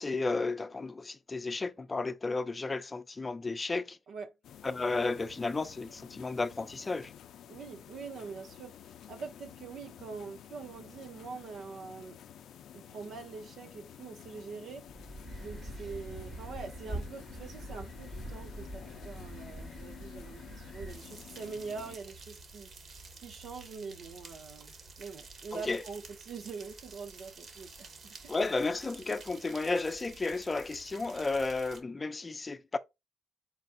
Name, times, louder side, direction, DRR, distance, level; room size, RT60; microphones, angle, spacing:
voice 1, 0.0-4.0 4.6-7.1 25.5-25.8 28.3-32.8, left 3 dB, 25° left, 0.5 m, -33 dB
sound 1, 4.4-22.0, left 9 dB, 80° left, 0.4 m, -51 dB
voice 2, 7.5-12.2 12.7-28.4, right 5 dB, 75° right, 0.7 m, -44 dB
sound 2, 14.9-21.0, right 1 dB, 40° right, 1.2 m, -44 dB
sound 3, 20.9-31.8, right 4 dB, 55° right, 1.4 m, -51 dB
4.2 x 3.8 x 2.5 m
cardioid pair, 85°, 0 cm